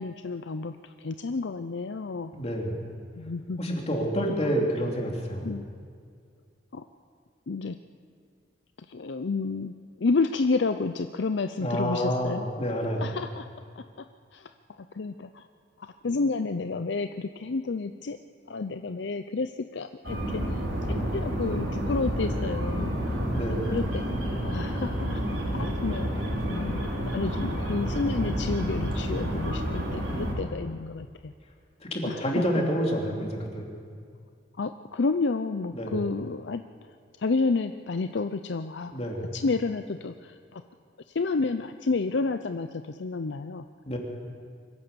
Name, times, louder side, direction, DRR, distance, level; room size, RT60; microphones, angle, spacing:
voice 1, 0.0-2.3 3.2-3.8 5.4-5.6 6.7-6.8 7.5-7.8 8.9-9.7 10.0-12.5 13.0-13.5 13.8-13.9 14.3-14.5 14.8-15.5 15.8-18.2 18.5-20.6 20.9-23.0 23.5-24.0 24.4-25.2 25.5-31.3 32.0-32.2 34.6-36.6 37.2-38.9 39.3-40.6 41.1-43.7, left 3 dB, 65° left, 9 dB, 0.6 m, -30 dB
voice 2, 2.3-2.8 3.6-5.5 11.6-13.1 23.3-23.7 31.8-33.7 35.7-36.0 38.9-39.2 43.8-44.0, equal, 35° left, -1 dB, 3.2 m, -28 dB
sound 1, 20.0-30.3, equal, 90° right, 4.9 m, -29 dB
23.5 x 16.0 x 6.9 m, 2.2 s
head